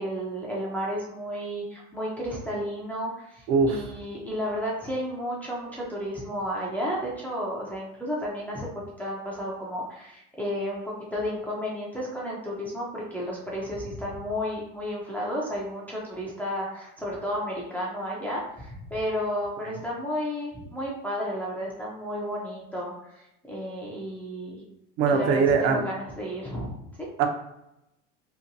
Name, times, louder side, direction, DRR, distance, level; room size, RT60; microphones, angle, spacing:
voice 1, 0.0-8.7 9.0-24.6 25.1-27.1, equal, 5° left, -5 dB, 0.4 m, -32 dB
voice 2, 3.5-3.8 25.0-25.8 27.2-27.3, right 5 dB, 60° right, 4 dB, 0.6 m, -21 dB
2.8 x 2.2 x 2.6 m, 0.86 s
supercardioid pair, 115°, 35 cm